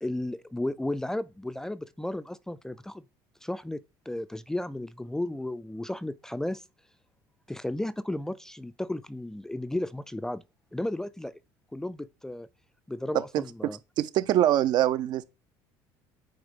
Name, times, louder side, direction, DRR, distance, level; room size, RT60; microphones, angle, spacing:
voice 1, 0.0-3.0 3.4-6.6 7.5-10.4 10.7-11.4 11.7-12.5 12.9-13.8, left 1 dB, 5° left, 0.3 m, -34 dB
voice 2, 14.0-15.2, right 12 dB, 55° right, 0.5 m, -23 dB
8.8 x 3.4 x 3.6 m
supercardioid pair, 110°, 9 cm